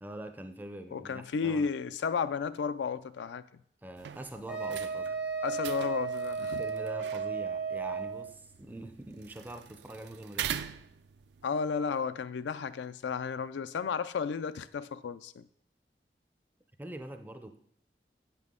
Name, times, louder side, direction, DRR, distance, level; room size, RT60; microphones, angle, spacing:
voice 1, 0.0-1.7 3.8-5.2 6.4-10.6 16.8-17.6, right 1 dB, 10° right, 0.4 m, -44 dB
voice 2, 0.9-3.6 5.4-6.6 11.4-15.5, left 6 dB, 90° left, 0.4 m, -33 dB
sound 1, 4.0-11.5, right 9 dB, 80° right, 0.3 m, -43 dB
Wind instrument woodwind instrument, 4.5-8.3, right 5 dB, 60° right, 0.9 m, -34 dB
8.7 x 5.9 x 3.6 m
head